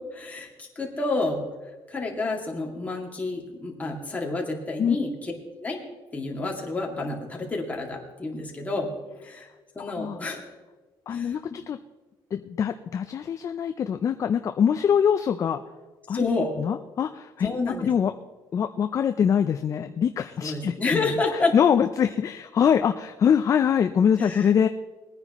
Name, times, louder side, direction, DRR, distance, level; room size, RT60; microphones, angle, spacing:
voice 1, 0.1-1.4 1.9-5.3 5.6-5.8 6.1-8.9 9.2-9.5 9.8-10.4 11.1-11.6 16.1-16.5 17.4-17.9 20.4-21.5 24.2-24.5, left 3 dB, 15° left, -1 dB, 2.2 m, -29 dB
voice 2, 11.1-11.8 12.3-15.6 16.1-16.2 16.6-17.5 17.8-18.1 18.5-21.2 21.5-24.7, left 8 dB, 35° left, 8 dB, 0.4 m, -23 dB
20.5 x 9.8 x 3.0 m, 1.2 s
cardioid pair, 135°, 9 cm